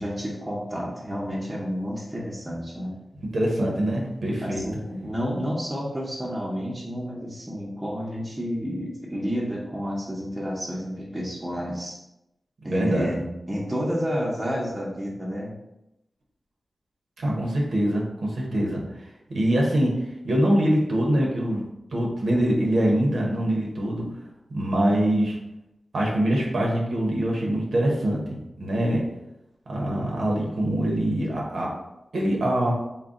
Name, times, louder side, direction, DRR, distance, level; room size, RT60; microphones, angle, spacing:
voice 1, 0.0-2.9 4.4-12.0 12.6-15.5, equal, 15° right, -5 dB, 0.7 m, -30 dB
voice 2, 3.3-4.6 12.6-13.1 17.2-18.8 19.3-19.9 20.2-21.6 21.9-24.1 24.5-25.4 25.9-29.0 29.7-31.7 32.1-32.7, right 1 dB, 85° right, -2 dB, 0.8 m, -24 dB
3.9 x 2.1 x 3.6 m, 0.89 s
wide cardioid pair, 90°, 0 cm